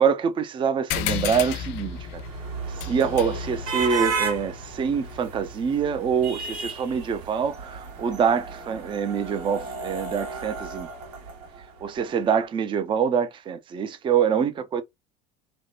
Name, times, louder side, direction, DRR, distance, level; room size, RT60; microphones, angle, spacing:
voice 1, 0.0-2.2 2.9-10.9 11.8-14.8, right 7 dB, 25° right, 0.4 m, -25 dB
sound 1, 0.9-5.8, left 10 dB, 65° left, 0.5 m, -34 dB
sound 2, 1.6-11.9, right 4 dB, 80° right, 1.6 m, -34 dB
3.4 x 2.1 x 2.4 m
supercardioid pair, 110°, 20 cm